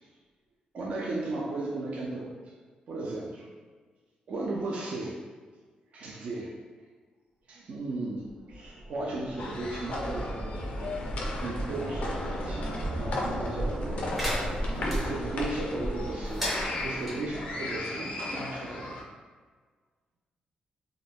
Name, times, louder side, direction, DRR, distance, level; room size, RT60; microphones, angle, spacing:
voice 1, 0.7-2.3 2.9-3.5 4.3-5.2 5.9-6.5 7.5-10.5 11.3-14.1 14.8-19.0, right 2 dB, 50° right, -3 dB, 0.3 m, -35 dB
sound 1, 8.3-17.5, right 1 dB, 75° right, 0.7 m, -35 dB
sound 2, 9.4-19.0, left 2 dB, 55° left, 0.3 m, -37 dB
sound 3, 14.2-15.0 16.2-17.2, equal, 5° right, 0.6 m, -34 dB
2.3 x 2.0 x 3.3 m, 1.5 s
wide cardioid pair, 175°, 3 cm